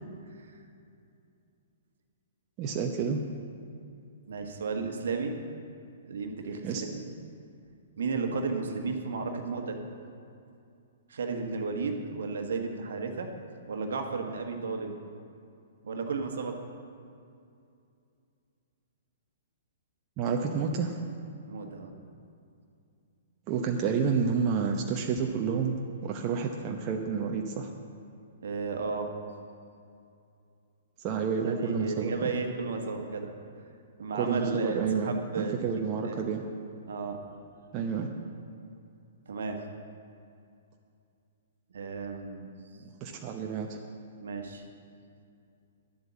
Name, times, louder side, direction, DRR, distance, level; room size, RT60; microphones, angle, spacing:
voice 1, 2.6-3.2 6.6-6.8 20.2-21.0 23.5-25.7 26.0-27.7 31.0-32.3 34.1-36.4 37.7-38.1 42.8-43.8, right 6 dB, 35° right, 2 dB, 0.9 m, -29 dB
voice 2, 4.3-5.3 6.0-7.0 8.0-9.8 11.1-13.3 13.7-15.0 15.8-16.6 21.4-21.9 28.4-29.1 31.4-33.3 34.0-35.6 36.0-36.1 36.9-37.2 39.3-39.6 41.7-42.5 44.2-44.6, right 4 dB, 65° right, 4 dB, 1.4 m, -33 dB
11.0 x 7.9 x 7.5 m, 2.5 s
figure-of-eight pair, 115°, 0 cm